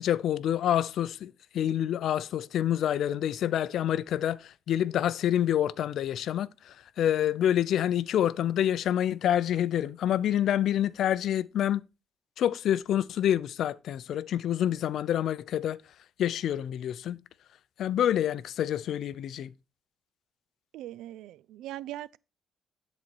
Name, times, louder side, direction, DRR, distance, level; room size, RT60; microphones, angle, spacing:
voice 1, 0.0-11.8 12.4-15.8 16.2-17.2 17.8-19.5, left 10 dB, 75° left, 0.4 m, -27 dB
voice 2, 20.7-22.2, right 14 dB, 90° right, 0.3 m, -40 dB
10.5 x 4.1 x 4.5 m
cardioid pair, 90°, 0 cm